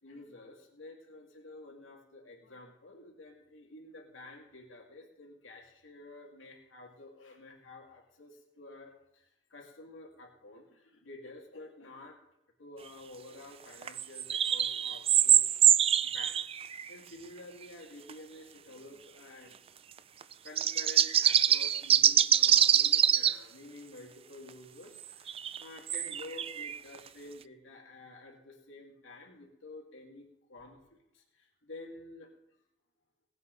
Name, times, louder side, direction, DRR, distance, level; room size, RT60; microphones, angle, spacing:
voice 1, 0.0-12.2 12.6-15.7 16.0-19.8 20.4-32.3, left 2 dB, 90° left, -1 dB, 2.5 m, -50 dB
sound 1, 13.8-16.9 18.1-18.2 20.2-23.4 25.0-27.0, right 10 dB, 30° right, 0.3 m, -25 dB
19.5 x 8.0 x 4.0 m, 0.83 s
head